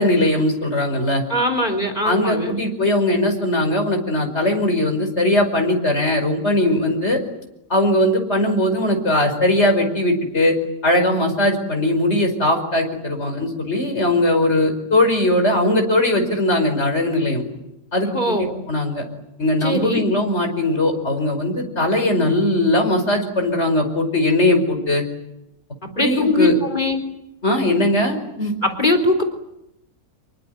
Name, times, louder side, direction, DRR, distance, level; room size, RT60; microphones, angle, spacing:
voice 1, 0.0-1.2 2.0-7.2 7.7-10.6 10.8-17.4 17.9-19.0 19.4-25.0 26.0-26.5 27.4-28.5, left 1 dB, 45° left, 5 dB, 5.5 m, -19 dB
voice 2, 1.3-2.6 18.1-18.6 19.6-20.0 26.0-27.0 28.6-29.2, left 1 dB, 30° left, 7 dB, 4.0 m, -20 dB
26.5 x 23.0 x 9.3 m, 0.88 s
omnidirectional pair, 1.5 m